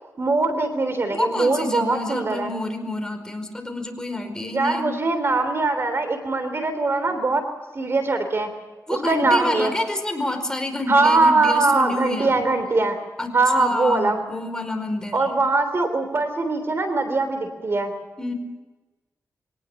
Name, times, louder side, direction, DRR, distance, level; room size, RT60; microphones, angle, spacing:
voice 1, 0.2-2.5 4.5-7.4 7.7-8.5 8.9-9.7 10.9-13.0 13.3-14.3 15.1-17.9, right 3 dB, 45° right, 8 dB, 3.4 m, -21 dB
voice 2, 1.1-4.9 8.9-12.4 13.2-13.3 13.6-15.3 18.2-18.3, left 2 dB, 10° left, 5 dB, 5.0 m, -28 dB
23.5 x 19.0 x 7.1 m, 1.2 s
wide cardioid pair, 90°, 6 cm